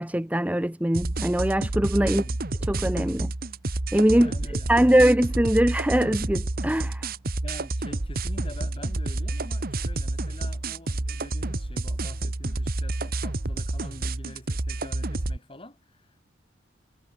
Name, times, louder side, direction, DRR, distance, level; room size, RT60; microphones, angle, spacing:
voice 1, 0.0-2.2 2.7-3.3 3.9-4.3 4.7-7.1, right 1 dB, 10° right, 0.9 m, -22 dB
sound 1, 0.9-15.4, right 2 dB, 55° right, 1.4 m, -29 dB
voice 2, 2.0-2.4 4.1-5.0 7.4-16.2, left 1 dB, 30° left, 8.0 m, -45 dB
head